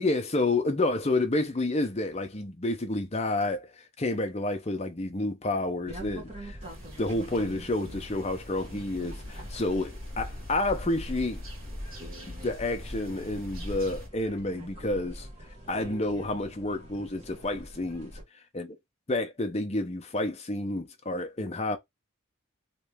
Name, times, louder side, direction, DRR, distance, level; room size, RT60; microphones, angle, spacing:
voice 1, 0.0-6.6 7.0-11.4 12.3-15.3 15.7-18.1 18.5-18.7 19.1-21.8, left 2 dB, 30° left, 0.7 m, -29 dB
sound 1, 5.9-18.2, right 1 dB, 30° right, 1.5 m, -45 dB
sound 2, 6.6-14.1, left 1 dB, 70° right, 2.1 m, -41 dB
3.2 x 3.0 x 3.5 m
head